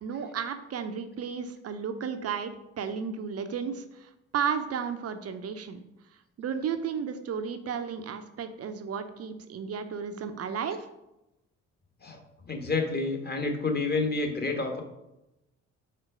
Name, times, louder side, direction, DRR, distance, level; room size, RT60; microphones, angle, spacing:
voice 1, 0.0-5.8 6.4-10.8, right 7 dB, 40° right, 8 dB, 0.6 m, -33 dB
voice 2, 12.0-14.8, left 3 dB, 25° left, 3 dB, 1.3 m, -29 dB
4.4 x 4.3 x 4.9 m, 0.92 s
figure-of-eight pair, 40°, 38 cm